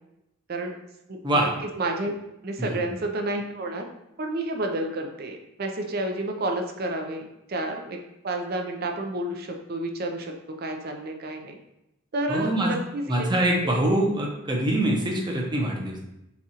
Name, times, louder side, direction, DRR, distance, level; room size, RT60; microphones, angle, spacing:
voice 1, 1.1-1.5 1.8-2.1 2.4-3.9 4.2-10.3 10.6-11.6 12.1-13.3 13.6-13.8, right 2 dB, 45° right, 3 dB, 0.6 m, -30 dB
voice 2, 12.3-12.7 13.1-16.0, right 1 dB, 20° right, -2 dB, 0.8 m, -24 dB
7.0 x 2.4 x 2.9 m, 0.87 s
head